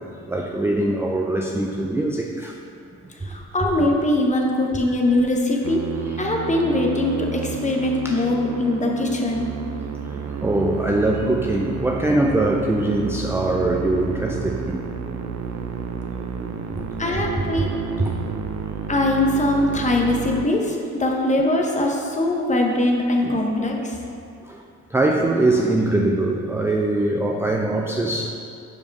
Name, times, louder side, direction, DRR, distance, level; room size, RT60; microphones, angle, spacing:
voice 1, 0.3-2.5 6.0-6.2 8.0-8.3 10.1-14.8 16.7-16.9 17.1-17.2 17.6-17.7 18.0-18.1 21.0-21.1 23.2-23.4 24.5-24.6 24.9-28.3, right 2 dB, 10° right, 0 dB, 0.4 m, -22 dB
voice 2, 3.2-5.8 6.2-9.5 17.0-17.8 18.9-24.0, left 1 dB, 25° left, 1 dB, 1.0 m, -22 dB
Musical instrument, 5.6-20.5, right 6 dB, 60° right, 0.6 m, -31 dB
5.0 x 4.8 x 5.2 m, 2.5 s
cardioid pair, 90°, 30 cm